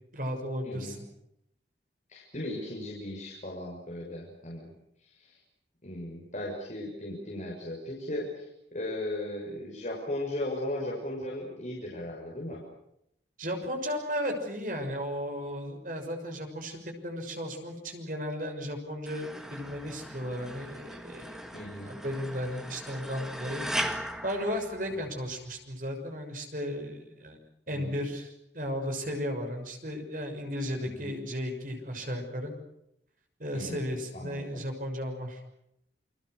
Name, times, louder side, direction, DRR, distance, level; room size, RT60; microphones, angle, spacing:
voice 1, 0.1-1.0 13.4-21.4 21.8-27.4 27.7-32.5 33.4-35.4, equal, 50° right, 4 dB, 6.3 m, -35 dB
voice 2, 0.6-1.0 2.1-4.7 5.0-5.4 5.8-12.6 21.5-21.9 27.7-28.0 30.8-31.2 33.5-33.9 34.1-34.6, left 1 dB, 45° left, -3 dB, 6.5 m, -37 dB
sound 1, 19.1-25.3, equal, 5° right, 1.9 m, -38 dB
29.5 x 24.5 x 6.6 m, 0.79 s
head